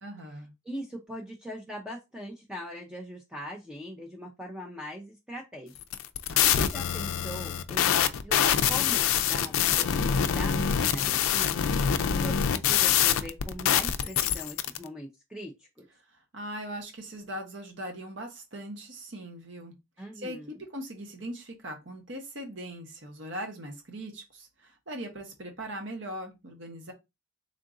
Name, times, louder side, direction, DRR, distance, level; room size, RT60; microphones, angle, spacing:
voice 1, 0.0-0.5 6.3-6.6 16.3-19.7 20.1-26.9, right 1 dB, 60° right, 1.0 m, -40 dB
voice 2, 0.7-5.8 6.5-7.9 8.2-11.9 12.2-15.7 20.0-20.6, equal, 5° right, 0.5 m, -41 dB
sound 1, 5.8-14.8, left 9 dB, 75° left, 0.4 m, -25 dB
3.7 x 2.5 x 3.7 m
head